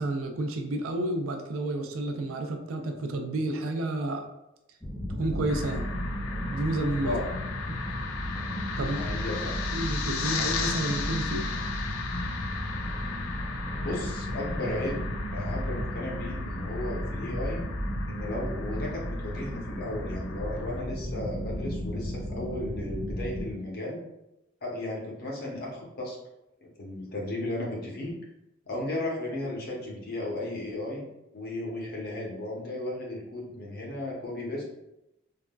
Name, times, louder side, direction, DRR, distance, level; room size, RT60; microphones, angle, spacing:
voice 1, 0.0-4.3 5.1-5.9 6.5-7.2 8.8-9.0 9.7-11.5, right 2 dB, 70° right, 4 dB, 0.4 m, -30 dB
sound 1, 4.8-23.5, equal, 5° left, 0.4 m, -34 dB
sound 2, 5.5-20.8, left 5 dB, 75° left, 0.3 m, -37 dB
voice 2, 7.0-7.4 8.8-9.6 13.8-17.6 18.1-24.0 24.6-26.2 26.8-28.1 28.7-31.1 31.3-34.6, left 1 dB, 50° left, -2 dB, 0.8 m, -35 dB
3.5 x 2.2 x 2.2 m, 0.88 s
head